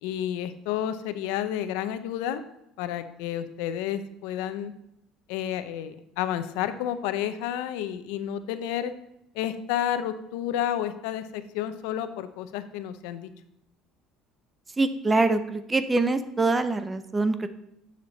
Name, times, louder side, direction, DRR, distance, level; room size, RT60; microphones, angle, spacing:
voice 1, 0.0-2.4 2.8-4.7 5.3-8.9 9.3-13.3, left 10 dB, 90° left, 11 dB, 0.7 m, -30 dB
voice 2, 14.8-17.5, right 3 dB, 15° right, 11 dB, 0.6 m, -24 dB
9.7 x 6.6 x 4.0 m, 0.81 s
cardioid pair, 140°, 0 cm